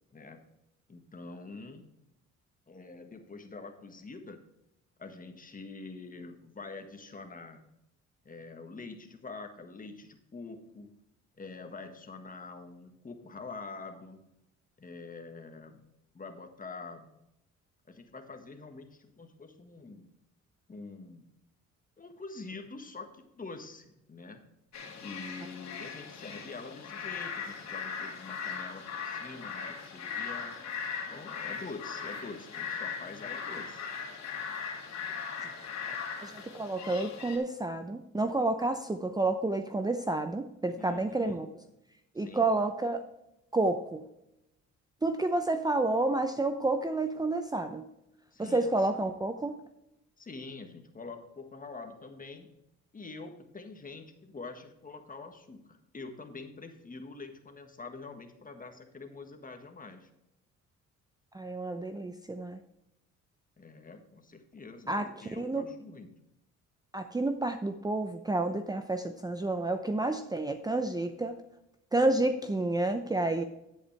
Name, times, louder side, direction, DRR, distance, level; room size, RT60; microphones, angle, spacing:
voice 1, 0.9-1.9 2.7-4.4 5.0-7.6 8.2-10.9 11.4-14.2 14.8-15.9 16.1-17.1 17.9-20.1 20.7-21.2 22.0-24.5 25.0-30.6 31.1-33.9 40.8-41.5 42.1-42.5 48.3-48.9 50.2-52.5 52.9-60.1 63.6-66.2, left 3 dB, 25° left, 6 dB, 1.5 m, -45 dB
sound 1, 24.7-37.4, left 6 dB, 60° left, 2.3 m, -39 dB
voice 2, 36.2-41.5 42.2-43.0 43.5-44.1 45.0-47.9 48.4-49.6 61.3-62.6 64.9-65.1 65.4-65.6 66.9-71.4 71.9-73.4, right 2 dB, 15° right, 8 dB, 0.6 m, -30 dB
10.5 x 8.2 x 3.3 m, 0.86 s
cardioid pair, 90°, 30 cm